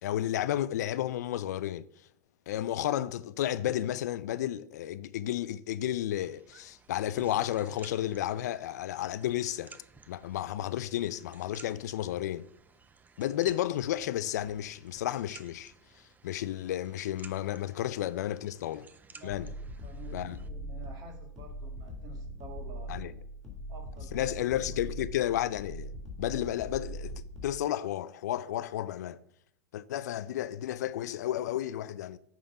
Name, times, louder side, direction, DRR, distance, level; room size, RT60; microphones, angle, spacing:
voice 1, 0.0-1.8 2.5-9.8 10.1-12.5 13.2-15.7 16.2-18.9 19.2-19.5 20.1-20.4 22.9-23.1 24.1-25.9 26.2-29.2 29.7-32.2, left 12 dB, 75° left, 0.4 m, -32 dB
sound 1, 6.2-20.5, right 4 dB, 20° right, 0.6 m, -56 dB
voice 2, 17.7-18.0 19.1-19.5 19.8-23.2 23.7-24.4, right 3 dB, 45° right, 2.0 m, -50 dB
sound 2, 19.3-27.6, equal, 5° left, 2.6 m, -41 dB
8.4 x 3.8 x 5.8 m
hypercardioid pair, 95°, 9 cm